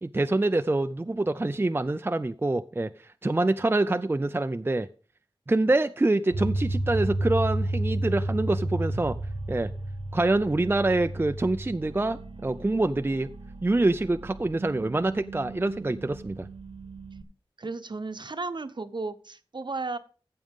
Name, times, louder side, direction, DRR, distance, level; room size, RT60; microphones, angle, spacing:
voice 1, 0.0-4.9 5.5-9.2 9.5-9.7 10.1-13.3 13.6-16.5, right 2 dB, 25° right, 9 dB, 0.5 m, -26 dB
sound 1, 6.3-17.2, right 1 dB, 80° right, 1.4 m, -33 dB
voice 2, 17.6-20.0, right 3 dB, 55° right, 11 dB, 0.9 m, -34 dB
14.5 x 7.7 x 3.6 m, 0.39 s
wide cardioid pair, 70°, 9 cm